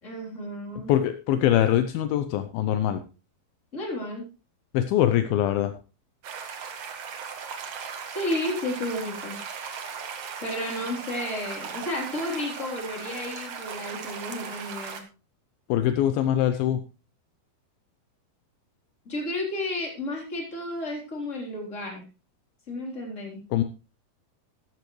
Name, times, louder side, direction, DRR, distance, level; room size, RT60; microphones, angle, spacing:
voice 1, 0.0-0.9 3.7-4.3 8.1-9.4 9.9-10.0 10.4-15.0 19.1-22.0 22.7-23.4, left 1 dB, 20° left, 0 dB, 3.7 m, -32 dB
voice 2, 0.9-3.0 4.7-5.7 15.7-16.8 23.5-23.6, left 11 dB, 80° left, 9 dB, 2.5 m, -23 dB
sound 1, 6.2-15.0, right 6 dB, 55° right, 2.0 m, -37 dB
13.5 x 13.0 x 3.2 m, 0.32 s
omnidirectional pair, 4.5 m